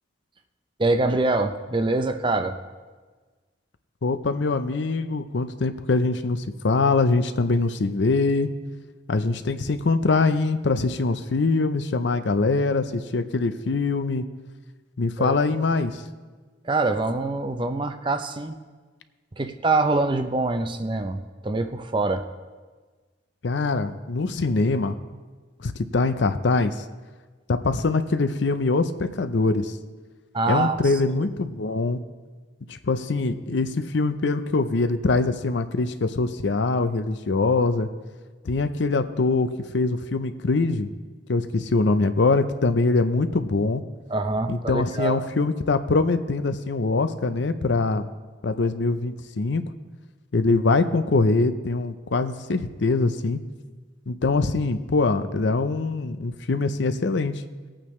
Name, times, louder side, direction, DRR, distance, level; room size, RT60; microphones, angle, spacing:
voice 1, 0.8-2.6 15.2-15.6 16.6-18.6 19.3-22.3 30.3-30.9 44.1-45.2, right 2 dB, 25° right, 8 dB, 0.5 m, -25 dB
voice 2, 4.0-8.5 9.1-14.2 15.0-16.0 23.4-25.0 25.6-26.7 27.5-29.7 30.5-32.0 32.7-37.9 38.4-40.9 41.3-43.8 44.5-48.1 48.4-49.6 50.3-53.4 54.1-57.4, left 3 dB, 70° left, 11 dB, 0.6 m, -23 dB
20.0 x 8.8 x 3.2 m, 1.4 s
head